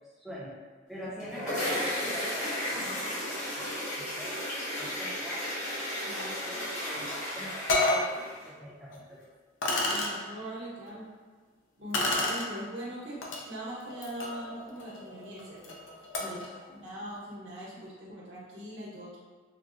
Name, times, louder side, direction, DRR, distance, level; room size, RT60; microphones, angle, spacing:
voice 1, 0.2-0.5 0.9-4.4 4.8-5.5 6.1-9.2 16.2-16.9, equal, ahead, -6 dB, 0.6 m, -43 dB
sound 1, 1.0-8.5, left 1 dB, 40° left, 1.1 m, -34 dB
voice 2, 6.0-6.5 9.9-11.0 11.8-13.2 13.5-15.8 16.2-19.2, equal, 65° right, -6 dB, 1.0 m, -41 dB
sound 2, 7.1-7.2 7.7-8.1 8.9-9.0 9.6-10.1 11.9-12.5 13.2-13.4 13.9-16.5, left 2 dB, 70° left, 0.5 m, -30 dB
3.8 x 2.1 x 2.4 m, 1.5 s
head